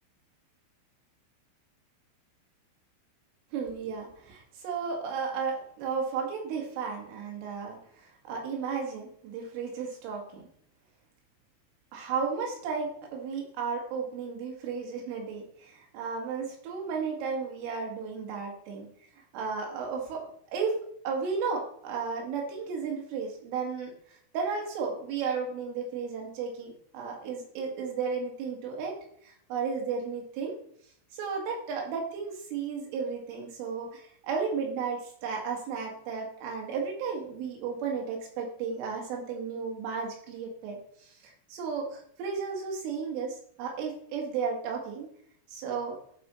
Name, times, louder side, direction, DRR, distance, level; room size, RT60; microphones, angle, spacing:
voice 1, 3.5-10.5 11.9-18.9 19.3-20.8 21.0-23.9 24.3-28.9 29.2-30.6 31.1-45.1 45.5-46.0, right 5 dB, 90° right, 0 dB, 4.4 m, -34 dB
11.5 x 5.2 x 4.4 m, 0.65 s
omnidirectional pair, 5.6 m